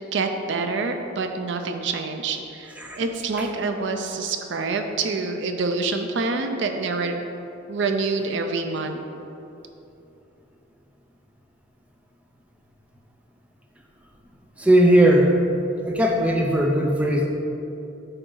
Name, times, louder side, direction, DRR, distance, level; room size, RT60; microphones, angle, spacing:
voice 1, 0.1-7.2 7.7-9.0, right 3 dB, 60° right, 6 dB, 0.5 m, -26 dB
voice 2, 14.6-15.4 15.8-17.3, right 1 dB, 5° right, 0 dB, 0.4 m, -18 dB
8.8 x 4.0 x 3.8 m, 2.9 s
head